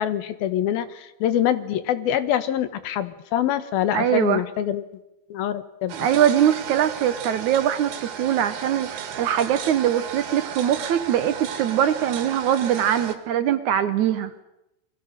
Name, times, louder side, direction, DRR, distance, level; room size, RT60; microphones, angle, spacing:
voice 1, 0.0-4.8 5.3-5.9, left 10 dB, 80° left, 12 dB, 3.1 m, -25 dB
voice 2, 3.9-4.4 6.0-14.3, right 10 dB, 65° right, 11 dB, 2.1 m, -22 dB
sound 1, 5.9-13.2, right 8 dB, 90° right, 3.8 m, -34 dB
30.0 x 23.5 x 6.6 m, 0.90 s
omnidirectional pair, 4.2 m